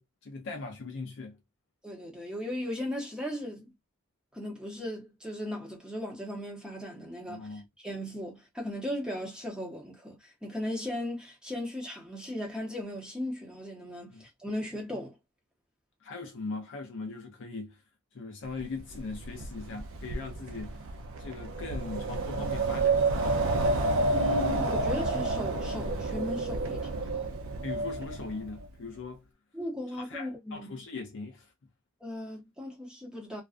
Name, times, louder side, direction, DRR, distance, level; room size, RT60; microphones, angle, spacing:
voice 1, 0.0-1.4 7.3-7.7 14.1-14.3 16.0-17.8 18.1-20.8 21.2-23.2 27.6-29.2 29.9-31.5, left 3 dB, 55° left, 0.5 m, -40 dB
voice 2, 1.8-3.7 4.3-15.2 24.1-27.3 29.5-30.7 32.0-33.4, left 1 dB, 5° right, 0.7 m, -37 dB
Wind, 18.6-28.7, right 2 dB, 60° right, 0.4 m, -30 dB
2.4 x 2.3 x 2.4 m
head